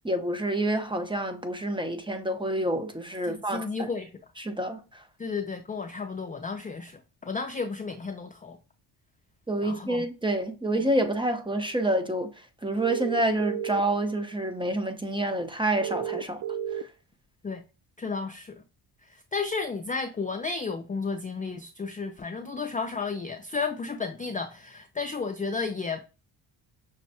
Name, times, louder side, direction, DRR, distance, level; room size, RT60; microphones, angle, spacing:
voice 1, 0.0-3.9 4.4-4.8 9.5-12.3 12.6-16.4 16.7-16.8, right 1 dB, 10° right, 0.7 m, -28 dB
voice 2, 3.2-4.1 5.2-8.6 9.6-10.1 17.4-17.6 18.0-18.6 19.0-26.1, left 4 dB, 20° left, 0.4 m, -33 dB
sound 1, 12.8-13.8 15.8-16.8, right 10 dB, 45° right, 0.4 m, -32 dB
6.2 x 2.2 x 2.7 m
cardioid pair, 75°, 48 cm